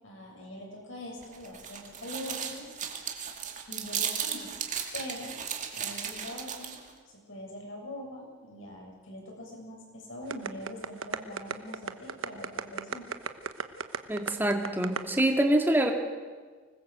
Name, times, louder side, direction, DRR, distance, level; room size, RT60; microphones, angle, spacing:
voice 1, 0.0-2.7 3.7-4.5 4.9-5.4 5.7-6.7 7.3-13.0, left 1 dB, 65° left, -1 dB, 7.7 m, -43 dB
sound 1, 1.2-6.9, right 8 dB, 35° right, 2.3 m, -35 dB
sound 2, 10.3-15.2, right 5 dB, 70° right, 1.1 m, -33 dB
voice 2, 14.1-15.9, right 1 dB, 10° right, 3 dB, 2.1 m, -25 dB
25.0 x 20.0 x 7.9 m, 1.5 s
head